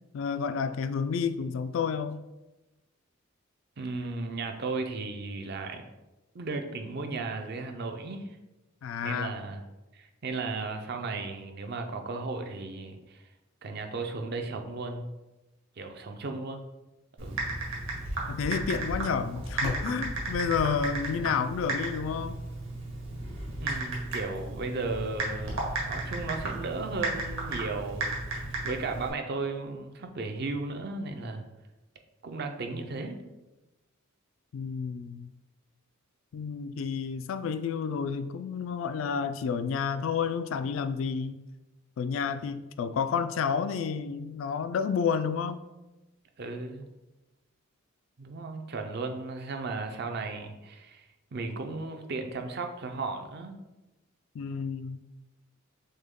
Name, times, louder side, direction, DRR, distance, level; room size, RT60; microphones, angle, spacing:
voice 1, 0.1-2.2 8.8-9.4 18.3-22.4 34.5-35.3 36.3-41.4 42.0-45.7 54.3-55.0, left 6 dB, 70° left, 12 dB, 0.3 m, -30 dB
voice 2, 3.8-5.9 6.3-8.4 9.0-9.6 9.9-13.2 13.6-15.1 15.8-16.6 17.2-17.4 23.6-31.5 32.2-33.2 46.4-46.9 48.2-51.0 51.3-53.6, right 3 dB, 50° right, 5 dB, 0.5 m, -35 dB
Typing, 17.2-29.1, right 2 dB, 70° right, 1.3 m, -34 dB
6.4 x 2.2 x 3.6 m, 1.0 s
head